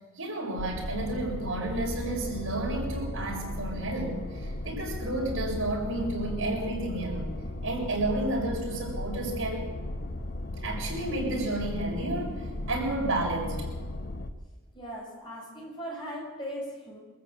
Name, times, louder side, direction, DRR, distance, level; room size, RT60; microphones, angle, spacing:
voice 1, 0.2-7.4 7.6-9.7 10.6-13.7, right 2 dB, 75° right, -1 dB, 6.9 m, -31 dB
sound 1, 0.6-14.3, left 1 dB, 45° left, 1.2 m, -36 dB
voice 2, 14.7-17.0, equal, 20° left, -3 dB, 7.1 m, -38 dB
24.5 x 14.0 x 8.7 m, 1.2 s
head